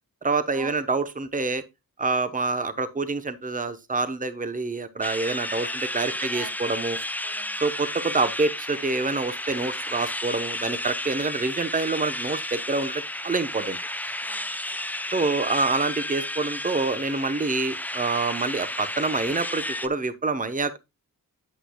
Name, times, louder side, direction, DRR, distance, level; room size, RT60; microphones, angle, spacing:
voice 1, 0.2-1.6 2.0-7.0 7.6-13.8 15.1-20.8, right 3 dB, 20° right, 0.9 m, -27 dB
sound 1, 5.0-19.9, left 1 dB, 5° left, 0.5 m, -32 dB
voice 2, 5.6-7.6 14.2-14.8, right 6 dB, 70° right, 0.9 m, -45 dB
8.9 x 8.2 x 2.2 m
wide cardioid pair, 100°, 36 cm